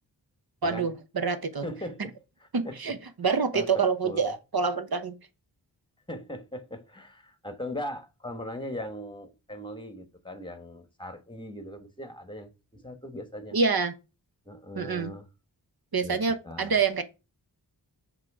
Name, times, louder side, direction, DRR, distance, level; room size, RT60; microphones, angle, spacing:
voice 1, 0.6-1.7 2.0-2.1 2.5-5.1 13.5-13.9 14.8-15.1 15.9-17.0, right 5 dB, 55° right, 0.9 m, -27 dB
voice 2, 1.6-2.1 2.4-2.9 3.2-4.3 6.1-13.6 14.4-15.3 16.0-16.2 16.4-16.8, left 1 dB, 10° left, 1.4 m, -39 dB
7.3 x 3.2 x 4.9 m
cardioid pair, 40°, 44 cm